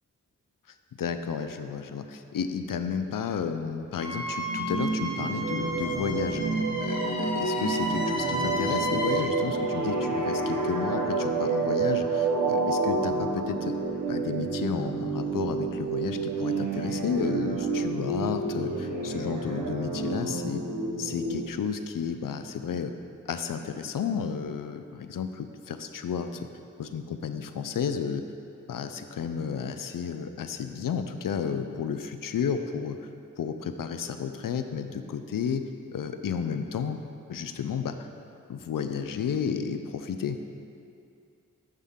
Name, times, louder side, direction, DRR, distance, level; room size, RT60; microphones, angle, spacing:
voice 1, 0.9-6.4 6.8-7.9 8.2-13.7 14.1-20.6 21.0-22.9 23.3-26.5 26.8-28.3 28.7-33.0 33.4-37.0 37.3-38.1 38.5-40.4, left 6 dB, 80° left, 8 dB, 0.5 m, -32 dB
Wind instrument woodwind instrument, 4.0-9.2, left 1 dB, 55° left, 1.3 m, -33 dB
sound 1, 4.5-21.4, right 3 dB, 65° right, 0.9 m, -29 dB
7.3 x 5.6 x 3.5 m, 2.5 s
wide cardioid pair, 50°, 33 cm